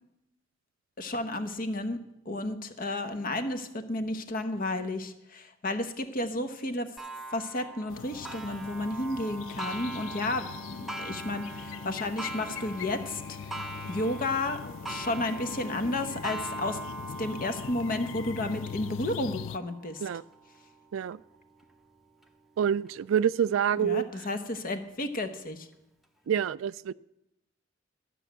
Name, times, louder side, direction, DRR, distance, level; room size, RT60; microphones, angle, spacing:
voice 1, 1.0-2.0 2.2-6.9 7.3-13.4 13.8-16.8 17.2-20.0 23.8-25.7, left 2 dB, 45° left, 1.0 m, -32 dB
Clock, 7.0-22.3 22.9-23.0 23.5-23.6 24.6-24.7, right 2 dB, ahead, 0.7 m, -42 dB
sound 1, 7.9-19.6, left 8 dB, 75° left, 0.3 m, -41 dB
voice 2, 22.6-24.1 26.3-26.9, right 8 dB, 90° right, 0.3 m, -27 dB
12.5 x 6.2 x 8.1 m
head